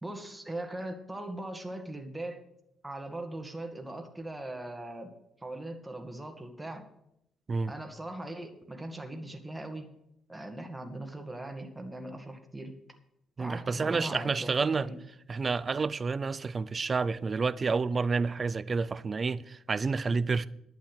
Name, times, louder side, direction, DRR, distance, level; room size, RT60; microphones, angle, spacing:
voice 1, 0.0-2.4 2.8-5.1 5.4-6.9 7.6-9.9 10.3-12.8 13.4-15.0, right 1 dB, 10° right, 2.0 m, -40 dB
voice 2, 13.4-14.9 15.3-20.5, right 4 dB, 35° right, 0.5 m, -29 dB
11.5 x 8.2 x 6.3 m
cardioid pair, 90°, 0 cm